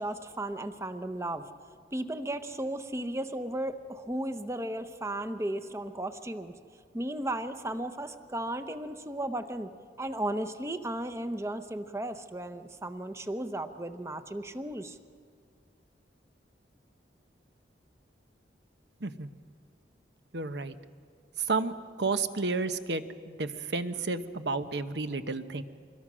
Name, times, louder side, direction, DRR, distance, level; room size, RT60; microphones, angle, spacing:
voice 1, 0.0-1.5 1.9-6.5 6.9-9.7 10.0-15.0, right 1 dB, 15° right, 10 dB, 0.8 m, -35 dB
voice 2, 20.3-20.7 21.4-25.6, right 3 dB, 70° right, 10 dB, 1.0 m, -31 dB
25.5 x 21.5 x 6.2 m, 2.2 s
head